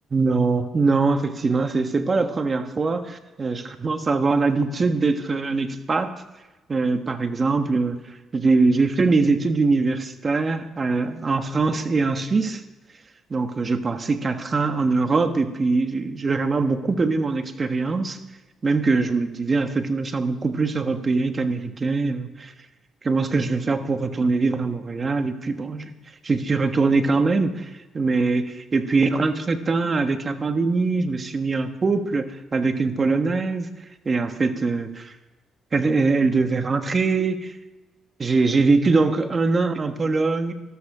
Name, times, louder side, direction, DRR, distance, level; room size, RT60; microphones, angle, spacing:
voice 1, 0.1-6.1 6.7-8.0 8.3-12.6 13.3-18.2 18.6-22.5 23.0-25.9 26.2-33.7 34.0-35.1 35.7-37.6 38.2-40.5, right 3 dB, 35° right, 8 dB, 1.3 m, -22 dB
13.0 x 13.0 x 4.9 m, 1.1 s
cardioid pair, 90°, 0 cm